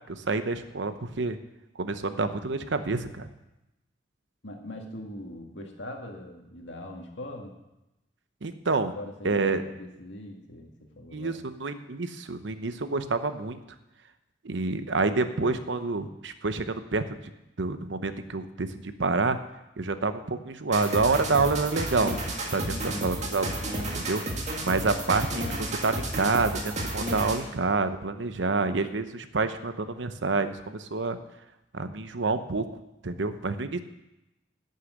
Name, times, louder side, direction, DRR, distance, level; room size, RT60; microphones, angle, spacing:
voice 1, 0.1-1.4 1.8-3.3 8.4-8.9 9.2-9.6 11.1-13.6 14.4-17.0 17.6-19.4 19.8-22.2 22.5-24.2 24.6-31.2 31.7-32.7 33.0-33.8, right 3 dB, 80° right, 10 dB, 0.9 m, -28 dB
voice 2, 4.4-7.6 8.9-11.4 22.7-23.2, left 1 dB, 85° left, 2 dB, 1.9 m, -41 dB
sound 1, 20.7-27.5, right 1 dB, 40° right, 1.9 m, -32 dB
11.5 x 6.7 x 8.0 m, 0.93 s
head